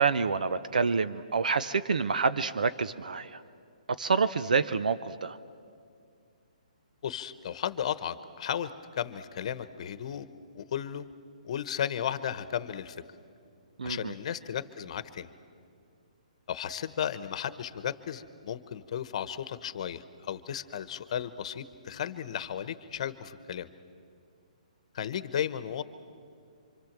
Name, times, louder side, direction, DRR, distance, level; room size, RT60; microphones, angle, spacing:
voice 1, 0.0-3.4 4.0-5.4 13.8-14.1, right 5 dB, 80° right, 13 dB, 0.8 m, -27 dB
voice 2, 7.0-10.3 10.5-11.1 11.4-13.0 13.8-15.3 16.5-23.7 24.9-25.8, left 9 dB, 50° left, 13 dB, 1.1 m, -34 dB
26.5 x 25.5 x 7.5 m, 2.3 s
hypercardioid pair, 150°, 4 cm